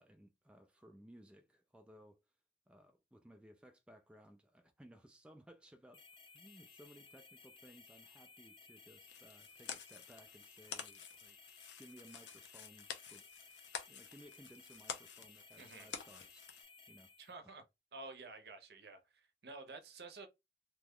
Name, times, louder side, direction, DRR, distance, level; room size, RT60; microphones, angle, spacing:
voice 1, 0.0-2.2 2.7-6.0 6.3-11.4 11.8-13.3 13.9-16.4 16.9-17.1, equal, 5° right, 0.3 m, -60 dB
sound 1, 5.9-17.4, left 4 dB, 30° left, 0.7 m, -60 dB
sound 2, 9.1-16.6, left 7 dB, 85° left, 0.6 m, -50 dB
voice 2, 15.6-15.9 17.2-17.6 17.9-20.3, right 3 dB, 65° right, 0.7 m, -51 dB
2.9 x 2.3 x 3.6 m
head